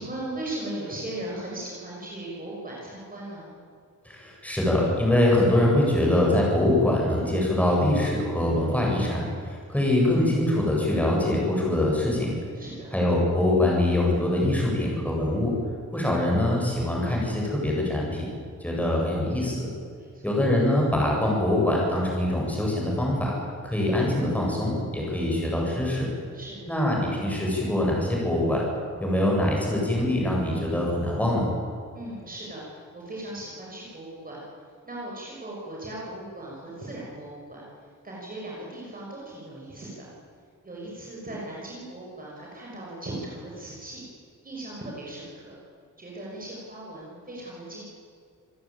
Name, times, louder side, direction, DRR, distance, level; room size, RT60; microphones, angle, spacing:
voice 1, 0.0-3.5 12.5-12.9 19.9-20.4 26.3-26.7 31.9-34.4 34.8-37.7 38.0-40.1 40.6-44.0 44.4-45.6 46.0-47.8, right 1 dB, 30° right, -4 dB, 5.9 m, -38 dB
voice 2, 4.0-12.3 12.9-15.5 15.9-18.3 18.6-19.7 20.2-23.3 23.6-26.1 26.7-28.6 29.0-31.5, left 1 dB, 5° left, -3 dB, 7.7 m, -23 dB
27.0 x 17.0 x 9.1 m, 2.3 s
wide cardioid pair, 175°, 31 cm